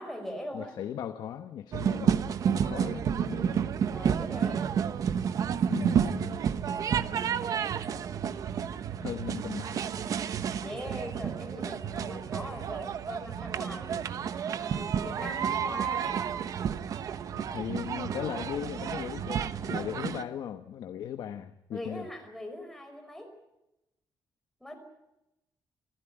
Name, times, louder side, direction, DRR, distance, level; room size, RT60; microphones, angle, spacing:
voice 1, 0.0-0.7 3.9-4.7 10.6-13.9 14.6-16.1 21.7-23.3 24.6-24.7, equal, 5° left, 4 dB, 5.0 m, -41 dB
voice 2, 0.5-3.7 5.7-6.4 9.0-9.8 17.3-22.1, left 10 dB, 65° left, 9 dB, 1.1 m, -38 dB
sound 1, 1.7-20.2, right 8 dB, 50° right, 1.0 m, -30 dB
27.5 x 15.0 x 9.9 m, 0.90 s
cardioid pair, 180°, 8 cm